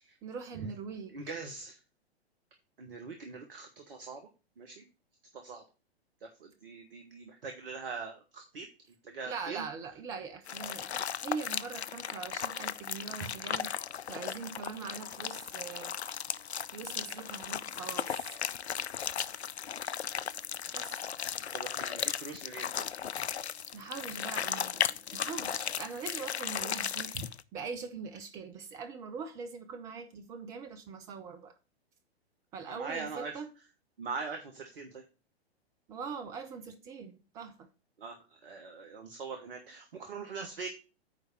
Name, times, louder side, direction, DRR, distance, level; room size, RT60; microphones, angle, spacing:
voice 1, 0.2-1.2 9.2-10.9 11.2-13.7 14.1-16.0 16.7-18.4 20.7-21.1 23.7-31.5 32.5-33.5 35.9-37.6, right 5 dB, 10° right, 0.3 m, -42 dB
voice 2, 1.1-1.8 2.8-4.3 4.6-4.8 5.3-5.6 6.2-8.7 9.0-9.7 21.5-22.9 27.1-27.3 32.7-33.3 34.0-35.0 38.0-40.7, right 4 dB, 60° right, 1.3 m, -42 dB
sound 1, 10.5-27.4, left 8 dB, 80° left, 0.5 m, -36 dB
9.2 x 3.3 x 6.4 m
figure-of-eight pair, 105°, 32 cm